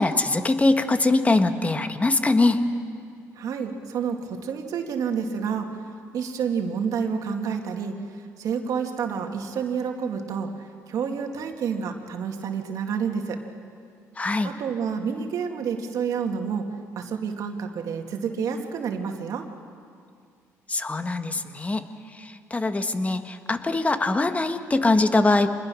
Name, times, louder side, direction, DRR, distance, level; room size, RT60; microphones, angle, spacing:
voice 1, 0.0-2.6 14.2-14.5 20.7-21.8 22.1-25.5, left 2 dB, 20° left, 8 dB, 1.6 m, -22 dB
voice 2, 3.3-5.8 6.1-10.5 10.9-13.4 14.4-16.7 17.0-19.5, right 6 dB, 65° right, 3 dB, 2.4 m, -29 dB
26.0 x 21.0 x 6.4 m, 2.3 s
cardioid pair, 80°, 6 cm